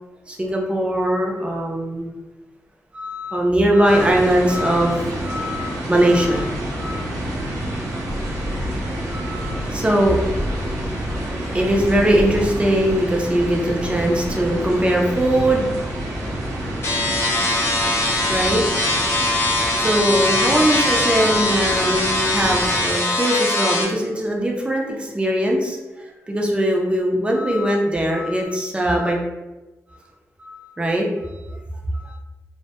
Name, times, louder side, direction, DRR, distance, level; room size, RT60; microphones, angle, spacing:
voice 1, 0.3-2.1 2.9-7.0 9.1-15.7 18.3-18.6 19.8-25.8 26.3-29.2 30.4-31.1 32.0-32.2, right 1 dB, 20° right, 0 dB, 0.5 m, -21 dB
sound 1, 3.8-22.9, equal, 85° right, 0.6 m, -28 dB
sound 2, 16.8-23.8, left 2 dB, 50° left, 0.6 m, -21 dB
2.1 x 2.1 x 2.8 m, 1.1 s
cardioid pair, 80°, 6 cm